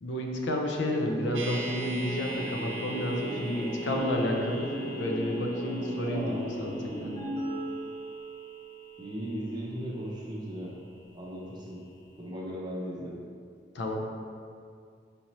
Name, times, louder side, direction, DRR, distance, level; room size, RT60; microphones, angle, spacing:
voice 1, 0.0-4.7 5.0-6.7 7.0-7.1 13.7-14.0, left 1 dB, 85° left, 1 dB, 0.5 m, -30 dB
sound 1, 0.8-9.2, right 1 dB, 30° left, 0.9 m, -37 dB
sound 2, 1.3-11.4 11.7-11.8, right 2 dB, 80° right, 0.4 m, -44 dB
voice 2, 6.0-6.5 9.0-10.7 11.1-11.8 12.2-13.2, equal, 25° right, -4 dB, 0.5 m, -37 dB
5.0 x 2.8 x 3.0 m, 2.3 s
head